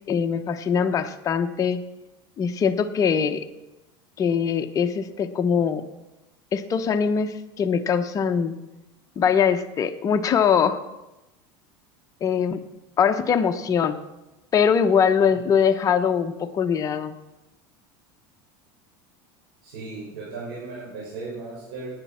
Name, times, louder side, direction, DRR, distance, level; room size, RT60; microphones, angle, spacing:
voice 1, 0.1-1.8 2.4-3.5 4.2-5.8 6.5-8.6 9.2-10.8 12.2-12.6 13.0-14.0 14.5-17.1, left 7 dB, 30° left, 6 dB, 0.9 m, -22 dB
voice 2, 19.6-21.9, right 3 dB, 85° right, -7 dB, 6.0 m, -36 dB
17.5 x 9.5 x 4.4 m, 1.0 s
supercardioid pair, 130°, 12 cm